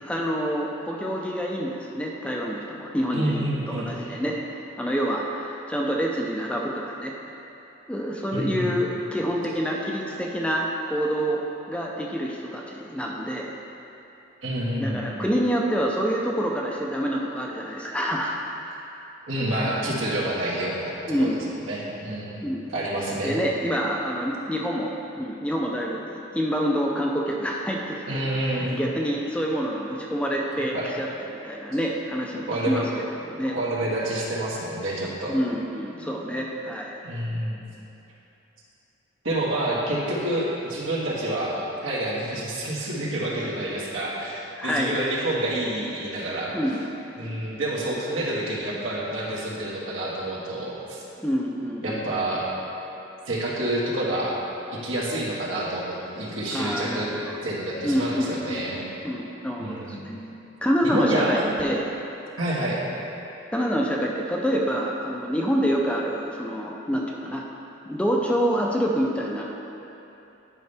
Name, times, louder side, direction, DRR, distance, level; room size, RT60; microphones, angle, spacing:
voice 1, 0.0-4.5 4.8-7.1 7.9-13.5 14.8-18.4 21.1-21.4 22.4-22.6 23.1-32.9 33.2-33.6 35.3-36.9 44.6-44.9 46.5-46.8 51.2-52.1 56.5-57.3 57.8-60.3 60.6-61.9 63.5-67.4 67.9-69.5, equal, 5° left, -2 dB, 0.5 m, -27 dB
voice 2, 3.1-4.2 8.3-8.7 14.4-15.1 19.3-20.9 21.2-22.4 22.7-23.3 28.1-28.8 30.6-30.9 32.5-32.8 33.4-35.3 37.0-37.7 39.2-46.5 47.2-51.0 51.8-52.5 53.3-54.4 54.7-57.1 57.4-58.8 59.6-60.0 60.8-61.5 62.4-62.8, right 1 dB, 85° right, -7 dB, 1.8 m, -28 dB
10.5 x 5.5 x 3.4 m, 3.0 s
head